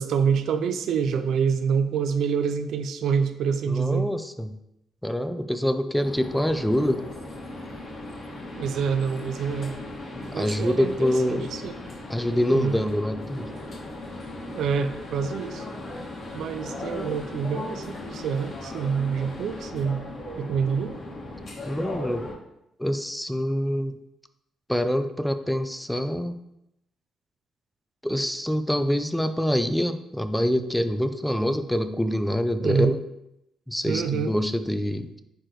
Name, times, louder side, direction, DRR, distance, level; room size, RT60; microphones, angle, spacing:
voice 1, 0.0-4.1 8.6-9.7 10.3-11.8 12.5-12.7 14.5-15.7 16.3-20.0 20.4-21.0 32.6-33.0 33.8-34.4, right 6 dB, 75° right, 10 dB, 0.6 m, -26 dB
voice 2, 3.7-4.6 5.0-7.1 10.3-11.5 12.1-13.5 21.7-22.3 22.8-24.0 24.7-26.4 28.0-33.0 33.7-35.2, equal, 5° left, 9 dB, 0.6 m, -25 dB
sound 1, 6.0-22.3, left 1 dB, 55° left, 2.6 m, -37 dB
10.0 x 4.7 x 3.2 m, 0.83 s
cardioid pair, 90°, 0 cm